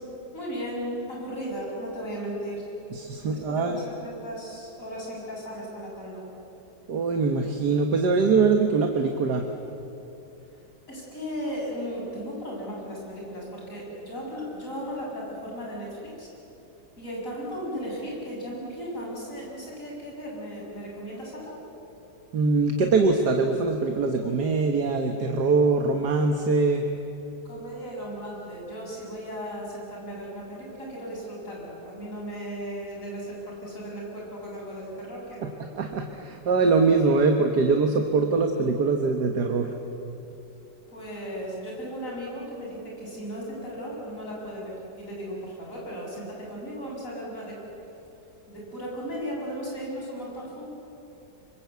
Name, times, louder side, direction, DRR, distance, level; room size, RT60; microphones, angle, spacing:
voice 1, 0.3-2.6 3.3-6.2 10.9-16.3 17.0-21.6 27.4-35.5 40.9-47.6 48.5-50.7, equal, 50° left, -3 dB, 7.8 m, -36 dB
voice 2, 3.0-3.8 6.9-9.4 22.3-26.9 35.7-39.7, right 4 dB, 70° right, 4 dB, 1.9 m, -23 dB
25.5 x 24.5 x 8.2 m, 2.9 s
omnidirectional pair, 1.8 m